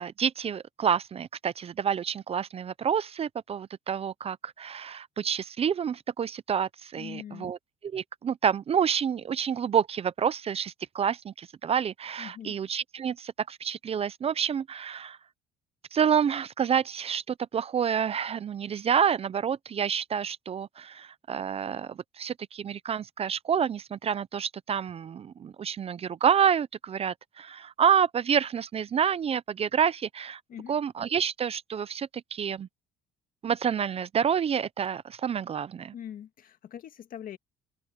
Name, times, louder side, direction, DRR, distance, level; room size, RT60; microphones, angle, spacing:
voice 1, 0.0-7.6 7.9-15.2 15.9-30.4 30.7-32.7 33.4-35.9, right 8 dB, 35° right, 0.6 m, -28 dB
voice 2, 6.9-7.5 12.2-12.6 30.5-30.8 35.9-37.4, left 9 dB, 55° left, 1.8 m, -42 dB
open air
cardioid pair, 110°, 17 cm